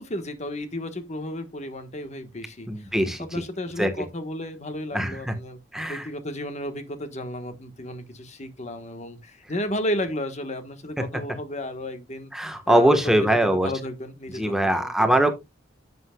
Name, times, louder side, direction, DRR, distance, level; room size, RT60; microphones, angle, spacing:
voice 1, 0.0-2.9 3.2-5.6 5.9-12.3 12.7-15.3, left 1 dB, 40° left, 1.4 m, -33 dB
voice 2, 2.7-3.2 3.8-3.9 4.9-5.2 5.7-6.0 12.3-13.7 14.4-15.4, right 1 dB, 5° right, 1.3 m, -21 dB
11.0 x 8.0 x 2.3 m
head